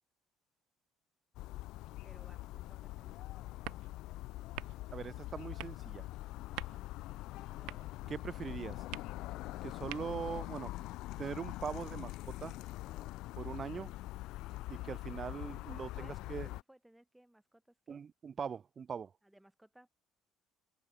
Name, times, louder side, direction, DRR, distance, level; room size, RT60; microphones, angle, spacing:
sound 1, 1.3-16.6, left 18 dB, 65° left, 1.0 m, -44 dB
voice 1, 2.0-3.8 15.7-18.0 19.2-19.9, right 1 dB, 5° right, 2.1 m, -62 dB
sound 2, 2.3-10.4, right 22 dB, 85° right, 1.8 m, -51 dB
voice 2, 4.9-6.0 8.1-8.8 9.6-10.7 11.2-12.5 13.4-13.9 14.7-16.5 17.9-19.1, right 6 dB, 25° right, 0.8 m, -41 dB
sound 3, 7.5-8.0 8.4-8.9 10.2-10.8 11.7-12.3 12.8-13.3 13.7-14.1, left 5 dB, 20° left, 2.8 m, -61 dB
cardioid pair, 170°, 0 cm